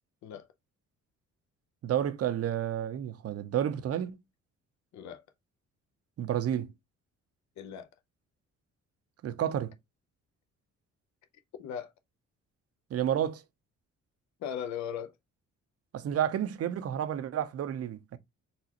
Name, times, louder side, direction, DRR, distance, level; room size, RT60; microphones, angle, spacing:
voice 1, 1.8-4.1 6.2-6.7 9.2-9.7 12.9-13.4 15.9-18.2, right 10 dB, 50° right, 0.6 m, -30 dB
voice 2, 4.9-5.2 7.6-7.9 11.6-11.9 14.4-15.2, left 8 dB, 65° left, 0.6 m, -38 dB
4.1 x 2.4 x 2.8 m
cardioid pair, 90°, 30 cm